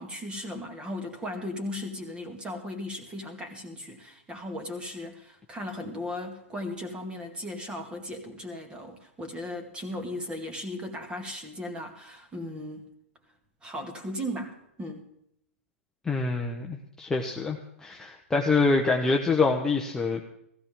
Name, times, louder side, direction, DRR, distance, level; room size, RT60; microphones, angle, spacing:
voice 1, 0.0-12.9 13.6-15.1, left 1 dB, 15° right, 5 dB, 2.2 m, -37 dB
voice 2, 16.1-20.2, left 3 dB, 10° left, 0 dB, 1.1 m, -26 dB
16.0 x 15.0 x 3.8 m, 0.76 s
hypercardioid pair, 130°, 7 cm